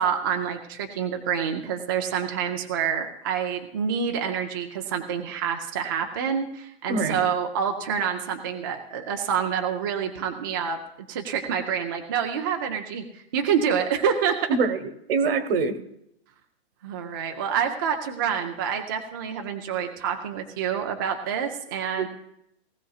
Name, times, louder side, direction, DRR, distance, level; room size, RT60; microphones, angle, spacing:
voice 1, 0.0-10.8 11.1-14.6 16.8-22.1, right 7 dB, 20° right, 4 dB, 0.4 m, -27 dB
voice 2, 6.9-7.2 14.5-14.8 15.1-15.8 22.0-22.1, right 4 dB, 60° right, 10 dB, 1.2 m, -24 dB
19.0 x 14.5 x 2.3 m, 0.77 s
hypercardioid pair, 170°, 32 cm